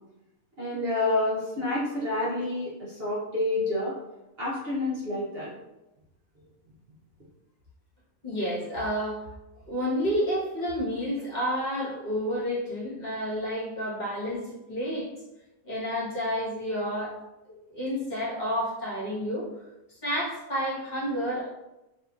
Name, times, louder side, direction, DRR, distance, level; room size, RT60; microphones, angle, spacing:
voice 1, 0.6-3.9 4.4-5.5, left 2 dB, 50° right, -8 dB, 0.9 m, -28 dB
voice 2, 8.2-9.2 9.7-15.1 15.6-17.1 17.5-19.5 19.9-21.5, equal, 30° left, -8 dB, 1.2 m, -30 dB
3.6 x 2.7 x 2.4 m, 0.95 s
omnidirectional pair, 1.6 m